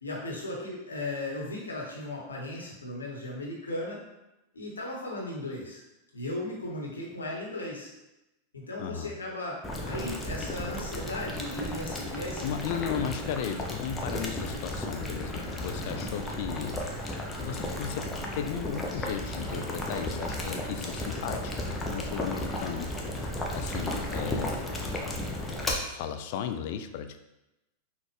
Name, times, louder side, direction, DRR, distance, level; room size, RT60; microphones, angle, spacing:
voice 1, 0.0-4.0 4.5-5.8 6.1-7.9 8.5-12.4 12.7-12.8 15.7-16.1, left 1 dB, 75° left, -2 dB, 1.1 m, -36 dB
voice 2, 8.8-9.1 12.4-21.5 21.9-24.7 25.8-27.2, left 8 dB, 50° left, 8 dB, 0.3 m, -36 dB
Boiling, 9.6-25.7, left 1 dB, 10° left, 0.7 m, -34 dB
5.8 x 2.4 x 3.3 m, 0.96 s
figure-of-eight pair, 90°, 0 cm